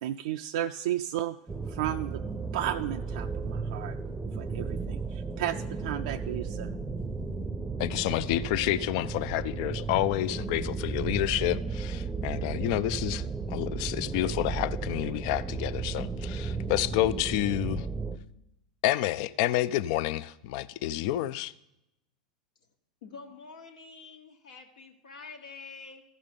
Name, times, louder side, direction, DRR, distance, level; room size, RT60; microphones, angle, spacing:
voice 1, 0.0-1.4 1.7-2.2 2.5-3.9 4.3-6.7, right 12 dB, 65° right, 0.3 m, -33 dB
sound 1, 1.5-18.2, right 4 dB, 10° right, 0.7 m, -34 dB
voice 2, 7.8-17.9 18.8-21.5, left 14 dB, 55° left, 0.4 m, -29 dB
voice 3, 23.0-26.0, left 4 dB, 75° left, 1.3 m, -47 dB
14.5 x 5.3 x 5.3 m
hypercardioid pair, 95°, 4 cm